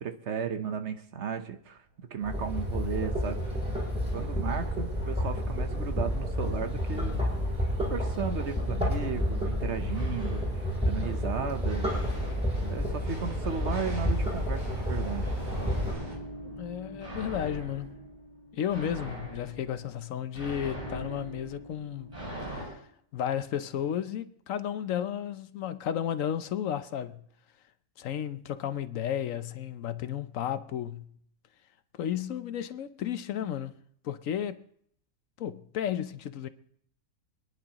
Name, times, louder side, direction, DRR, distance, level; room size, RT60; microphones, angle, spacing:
voice 1, 0.0-1.8 2.1-3.5 4.1-7.2 7.8-11.9 12.7-15.3, right 6 dB, 55° right, 1.1 m, -35 dB
sound 1, 1.9-2.0 2.1-2.2 2.5-2.7 3.2-3.3 6.3-6.4 6.9-16.2, right 1 dB, 35° right, 4.5 m, -46 dB
sound 2, 2.2-15.9, equal, 5° right, 5.7 m, -30 dB
sound 3, 9.9-11.1 11.6-12.9 13.4-22.6, equal, 20° right, 7.4 m, -42 dB
voice 2, 16.4-17.9 18.5-22.1 22.4-22.8 23.1-27.1 28.0-31.1 32.0-33.7 34.0-34.6 35.4-36.5, left 9 dB, 70° left, 1.0 m, -33 dB
26.5 x 10.5 x 2.9 m
omnidirectional pair, 1.5 m